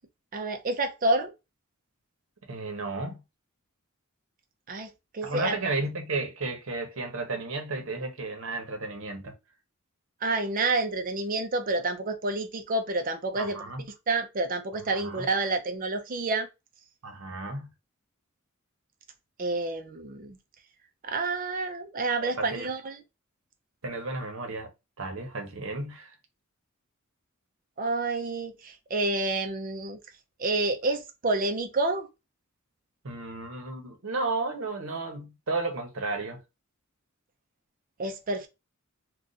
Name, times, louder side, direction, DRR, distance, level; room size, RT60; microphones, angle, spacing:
voice 1, 0.3-1.3 4.7-5.5 10.2-13.7 14.1-16.5 19.4-20.4 21.0-23.0 27.8-30.0 30.4-32.1 38.0-38.5, right 2 dB, 40° right, 0.5 m, -29 dB
voice 2, 2.5-3.2 5.2-9.3 13.4-13.8 14.9-15.2 17.0-17.7 22.2-22.7 23.8-24.7 25.0-26.1 33.0-36.4, right 3 dB, 65° right, 0.9 m, -33 dB
2.5 x 2.3 x 3.9 m
head